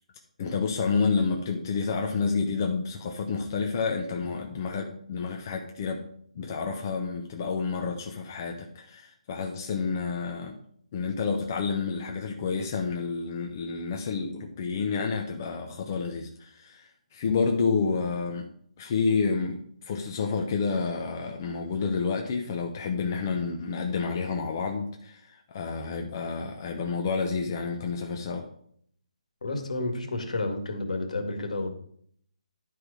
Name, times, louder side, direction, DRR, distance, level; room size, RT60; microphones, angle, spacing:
voice 1, 0.4-6.0 6.3-10.5 10.9-18.5 18.8-28.4, left 5 dB, 25° left, 2 dB, 0.8 m, -29 dB
voice 2, 29.4-31.7, left 2 dB, 65° left, 4 dB, 2.1 m, -30 dB
11.0 x 4.8 x 5.1 m, 0.65 s
hypercardioid pair, 170°, 4 cm